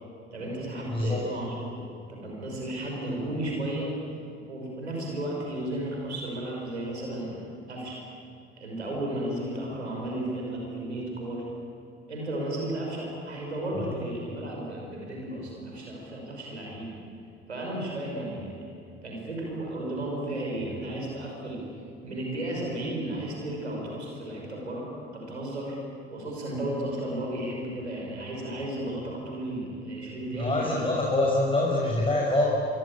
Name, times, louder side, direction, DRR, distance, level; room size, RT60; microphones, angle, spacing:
voice 1, 0.3-3.9 4.5-7.4 7.7-8.0 8.6-11.5 12.1-16.9 17.5-18.5 19.0-21.7 22.0-24.9 25.1-25.8 26.1-30.9, right 1 dB, 90° right, -1 dB, 5.7 m, -34 dB
voice 2, 0.9-1.2 30.3-32.5, left 2 dB, 15° left, -4 dB, 6.0 m, -25 dB
25.0 x 25.0 x 8.6 m, 2.6 s
figure-of-eight pair, 60°, 32 cm